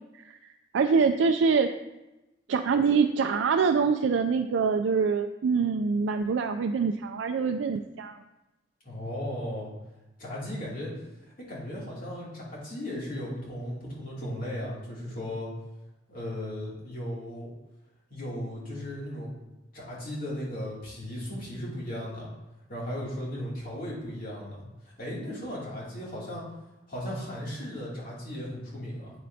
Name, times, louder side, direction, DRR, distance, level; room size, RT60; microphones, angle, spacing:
voice 1, 0.7-1.7 2.5-8.2, right 5 dB, 80° right, 6 dB, 0.4 m, -25 dB
voice 2, 8.8-9.7 10.2-10.9 11.5-15.5 16.1-17.5 18.1-19.3 19.7-22.3 22.7-24.6 24.8-26.4 26.9-29.1, left 1 dB, 50° left, -6 dB, 2.6 m, -36 dB
8.5 x 7.5 x 2.7 m, 0.99 s
head